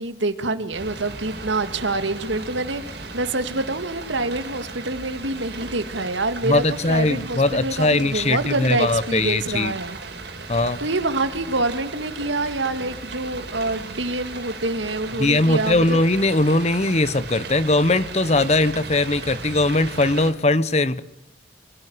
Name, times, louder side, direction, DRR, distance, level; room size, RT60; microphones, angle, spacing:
voice 1, 0.0-10.0 10.8-16.0, right 2 dB, 80° right, 10 dB, 2.0 m, -26 dB
sound 1, 0.7-20.3, right 3 dB, 60° right, 5.1 m, -36 dB
voice 2, 6.4-9.7 10.5-10.8 15.2-21.0, left 2 dB, 35° left, 15 dB, 1.0 m, -20 dB
26.0 x 17.5 x 9.5 m, 0.83 s
head